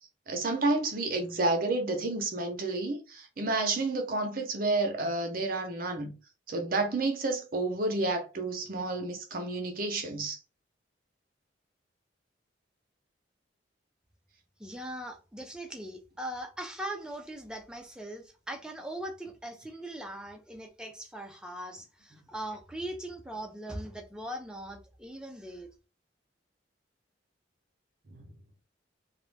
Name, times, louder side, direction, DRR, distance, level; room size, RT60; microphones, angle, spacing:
voice 1, 0.3-6.1 6.5-10.4 28.1-28.2, right 2 dB, 50° right, 0.7 m, -30 dB
voice 2, 14.6-25.7, right 1 dB, 5° right, 0.4 m, -40 dB
2.5 x 2.0 x 3.2 m
head